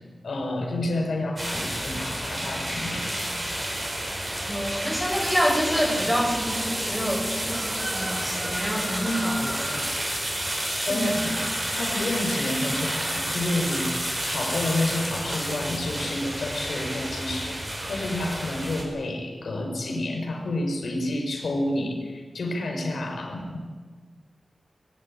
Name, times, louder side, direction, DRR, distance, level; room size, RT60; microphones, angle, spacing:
voice 1, 0.2-3.2 10.9-11.3 11.7-17.6 17.9-23.6, left 1 dB, 90° left, 2 dB, 4.8 m, -29 dB
sound 1, 1.4-18.8, right 1 dB, 25° right, 6.0 m, -30 dB
voice 2, 4.5-9.9 10.8-11.4, equal, 5° right, 2 dB, 5.5 m, -27 dB
20.5 x 17.0 x 9.9 m, 1.5 s
wide cardioid pair, 120°, 0 cm